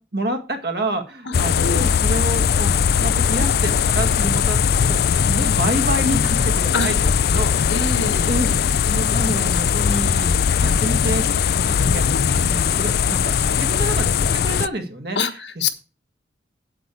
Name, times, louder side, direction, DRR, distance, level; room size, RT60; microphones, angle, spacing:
voice 1, 0.1-2.7 3.0-4.6 4.9-7.9 8.2-8.5 8.8-11.2 11.7-12.0 12.3-15.2, right 1 dB, 60° right, 5 dB, 1.9 m, -28 dB
sound 1, 1.3-14.7, left 7 dB, 60° left, 0.4 m, -19 dB
voice 2, 7.7-8.3 10.6-10.7 12.1-12.5 15.1-15.7, left 4 dB, 85° left, 7 dB, 1.4 m, -26 dB
8.5 x 8.0 x 4.7 m, 0.32 s
head